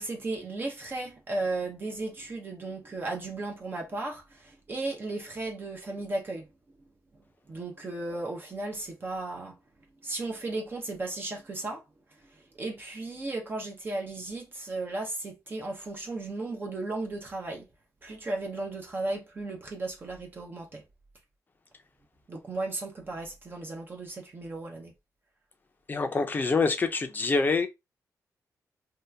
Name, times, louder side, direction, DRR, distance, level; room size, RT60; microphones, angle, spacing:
voice 1, 0.0-6.5 7.5-9.6 10.0-11.8 12.2-17.7 18.0-20.8 22.3-24.9, right 2 dB, 35° right, 0.8 m, -35 dB
voice 2, 25.9-27.7, left 4 dB, 30° left, 0.6 m, -26 dB
2.8 x 2.4 x 3.3 m
wide cardioid pair, 120°, 6 cm